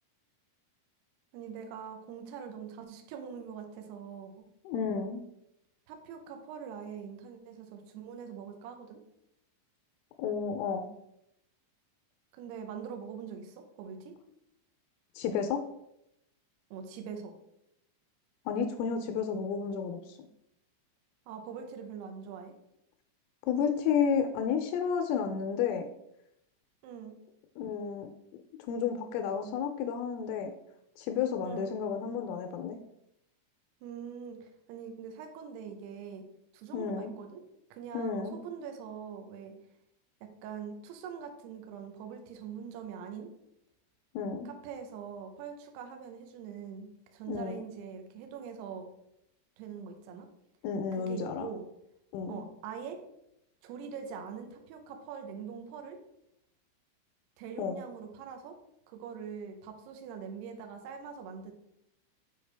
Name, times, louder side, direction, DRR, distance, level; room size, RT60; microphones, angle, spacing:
voice 1, 1.3-4.4 5.9-9.0 12.4-14.1 16.7-17.3 21.3-22.5 26.8-27.2 31.4-31.7 33.8-36.2 36.5-37.4 37.7-39.5 40.2-43.3 44.5-48.9 49.6-50.3 51.0-51.7 52.3-53.0 53.6-56.0 57.4-58.5 58.9-61.5, right 7 dB, 85° right, 4 dB, 2.3 m, -43 dB
voice 2, 4.7-5.2 10.2-10.9 15.2-15.6 18.5-20.2 23.5-25.9 27.6-28.1 28.7-30.5 31.0-32.8 36.7-37.2 37.9-38.5 44.1-44.5 47.3-47.7 50.6-51.5 52.1-52.4 57.6-57.8, left 6 dB, 85° left, 5 dB, 3.0 m, -31 dB
7.7 x 4.8 x 3.3 m, 0.81 s
omnidirectional pair, 5.9 m